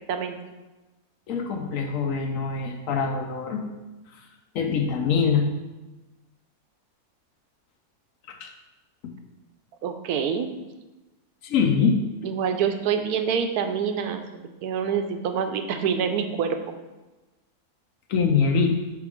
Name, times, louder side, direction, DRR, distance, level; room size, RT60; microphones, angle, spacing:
voice 1, 1.3-3.6 4.1-4.2 4.5-5.4 8.3-8.5 11.4-12.0 18.1-18.8, left 5 dB, 70° left, 4 dB, 0.9 m, -23 dB
voice 2, 9.8-10.5 12.2-14.2 14.6-16.7, right 7 dB, 80° right, 7 dB, 1.1 m, -26 dB
5.8 x 3.8 x 4.8 m, 1.1 s
omnidirectional pair, 1.6 m